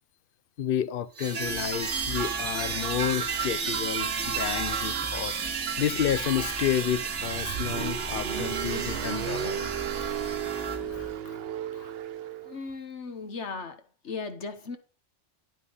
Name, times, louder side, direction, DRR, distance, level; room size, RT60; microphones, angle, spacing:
voice 1, 0.6-5.3 5.8-9.7 10.9-11.4 11.8-11.9, left 9 dB, 55° left, 0.8 m, -31 dB
sound 1, 1.2-10.8, right 6 dB, 80° right, 1.7 m, -32 dB
sound 2, 1.4-11.2, right 1 dB, ahead, 1.2 m, -44 dB
Car, 7.1-12.6, right 9 dB, 60° right, 0.8 m, -34 dB
voice 2, 12.4-14.8, left 4 dB, 75° left, 1.6 m, -37 dB
9.8 x 9.0 x 3.9 m
omnidirectional pair, 1.2 m